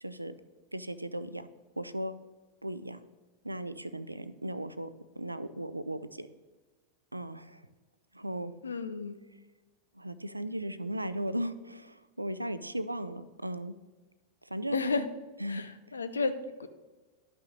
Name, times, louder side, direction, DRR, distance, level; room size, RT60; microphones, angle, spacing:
voice 1, 0.0-0.3 0.7-1.5 1.8-2.1 2.6-3.0 3.4-4.9 5.2-6.3 7.1-7.6 8.1-8.5 9.9-13.7 14.4-14.9 15.4-15.6 15.9-16.0, right 1 dB, 85° right, 14 dB, 0.4 m, -36 dB
voice 2, 8.6-9.2 14.7-15.1 15.5-16.7, left 4 dB, 75° left, 11 dB, 0.6 m, -32 dB
11.5 x 5.8 x 3.8 m, 1.2 s
figure-of-eight pair, 90°, 0 cm